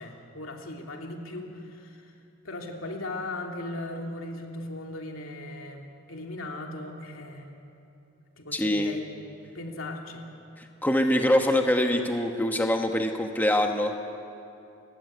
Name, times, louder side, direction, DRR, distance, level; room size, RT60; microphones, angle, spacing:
voice 1, 0.0-2.1 2.4-7.5 8.4-9.1 9.5-10.2, left 2 dB, 70° left, 1 dB, 3.0 m, -38 dB
voice 2, 8.5-8.9 10.6-13.9, left 1 dB, 10° left, 4 dB, 1.2 m, -24 dB
29.0 x 16.5 x 9.5 m, 2.7 s
head